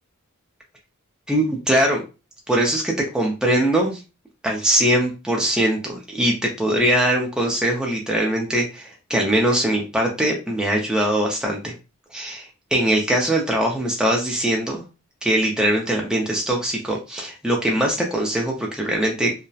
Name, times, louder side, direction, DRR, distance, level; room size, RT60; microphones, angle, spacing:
voice 1, 1.3-2.0 2.5-4.0 4.4-11.7 12.1-14.8 15.2-19.3, right 1 dB, 5° right, -1 dB, 0.4 m, -21 dB
2.7 x 2.0 x 2.2 m, 0.29 s
head